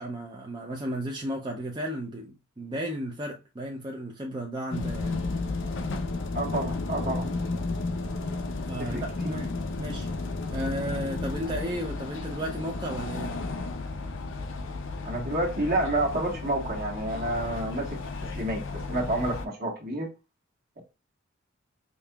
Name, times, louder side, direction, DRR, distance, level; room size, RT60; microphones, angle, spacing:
voice 1, 0.0-5.1 8.6-10.1 10.5-13.4, equal, 25° right, 0.6 m, -34 dB
sound 1, 4.7-19.4, left 3 dB, 65° left, 0.6 m, -33 dB
voice 2, 6.3-7.3 8.8-9.4 15.0-18.0 18.3-20.1, right 1 dB, 50° right, 1.4 m, -29 dB
5.2 x 2.8 x 2.3 m
head